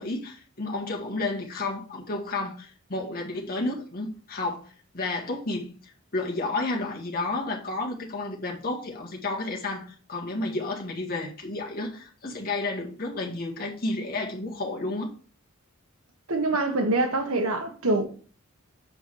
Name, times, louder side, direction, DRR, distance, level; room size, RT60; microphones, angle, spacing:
voice 1, 0.0-5.8 6.1-15.1, left 2 dB, 45° left, 1.9 m, -31 dB
voice 2, 16.3-18.1, right 2 dB, 85° right, 1.4 m, -25 dB
7.0 x 5.4 x 4.8 m
head